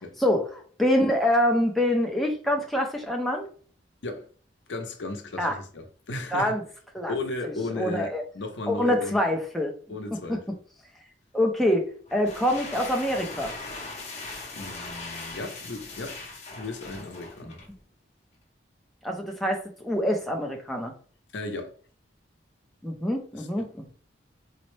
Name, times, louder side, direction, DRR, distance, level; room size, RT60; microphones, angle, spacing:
voice 1, 0.2-3.5 5.4-5.6 6.3-6.6 6.9-7.1 7.4-8.2 8.7-9.7 10.3-10.4 11.3-13.5 19.0-20.9 22.8-23.9, left 1 dB, ahead, 0.5 m, -25 dB
voice 2, 4.7-6.6 7.1-9.2 9.9-10.5 14.1-16.2 16.5-17.6 21.3-21.7 23.3-23.7, left 2 dB, 75° left, 0.7 m, -35 dB
sound 1, 12.1-17.8, left 3 dB, 35° left, 0.8 m, -39 dB
4.0 x 2.1 x 3.1 m
head